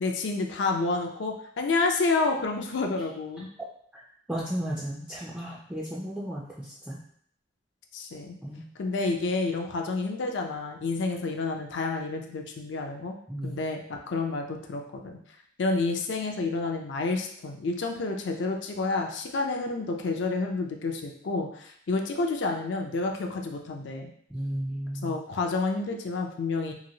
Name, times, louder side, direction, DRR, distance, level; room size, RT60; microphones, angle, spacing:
voice 1, 0.0-3.5 7.9-8.4 8.8-13.2 13.4-15.2 15.6-24.1 25.0-26.7, left 3 dB, 65° left, 3 dB, 0.4 m, -29 dB
voice 2, 4.3-7.0 8.4-8.6 13.3-13.6 24.3-25.2, equal, 5° right, -6 dB, 0.3 m, -34 dB
2.9 x 2.8 x 2.6 m, 0.64 s
head